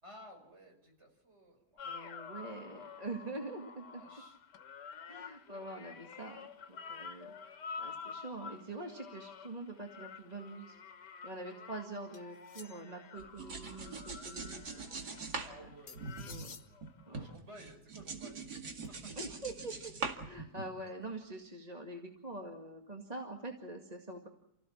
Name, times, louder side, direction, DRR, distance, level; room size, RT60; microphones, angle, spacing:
voice 1, 0.0-1.9 3.9-4.4 15.4-16.1 17.1-18.6, equal, 40° right, 3 dB, 5.6 m, -55 dB
sound 1, 1.8-17.3 18.9-19.0, left 6 dB, 85° left, 1.8 m, -49 dB
voice 2, 1.8-4.0 5.1-7.3 7.8-10.8 11.0-14.6 14.9-15.3 15.6-15.7 16.3-16.6 17.1-17.3 19.2-24.3, right 2 dB, 25° right, 2 dB, 2.1 m, -45 dB
sound 2, 12.1-13.1 15.9-16.7, left 5 dB, 45° left, 1.4 m, -52 dB
sound 3, 13.2-16.9 17.1-20.9, right 4 dB, 75° right, 2.8 m, -42 dB
29.5 x 16.0 x 7.3 m, 0.80 s
omnidirectional pair, 1.8 m